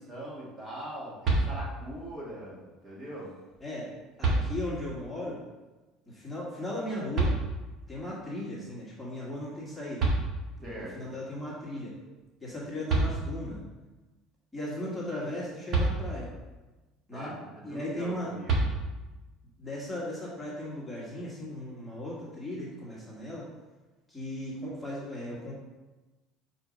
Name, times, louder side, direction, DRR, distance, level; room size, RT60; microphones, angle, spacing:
voice 1, 0.0-3.3 10.6-11.1 17.1-18.6, right 1 dB, 30° right, -5 dB, 1.9 m, -41 dB
sound 1, 1.2-2.0 3.5-3.6 4.2-5.0 7.1-7.9 9.7-9.8 10.0-10.8 12.5-12.6 12.9-13.6 15.7-16.5 18.5-19.2, right 3 dB, 45° right, 1.8 m, -29 dB
voice 2, 4.2-5.4 6.1-7.3 7.9-10.1 10.6-11.9 12.4-13.6 14.5-16.3 17.1-17.3 17.6-18.3 19.6-23.5 24.1-25.5, left 1 dB, 5° left, -6 dB, 1.7 m, -37 dB
4.9 x 4.4 x 5.3 m, 1.2 s
cardioid pair, 125°, 0 cm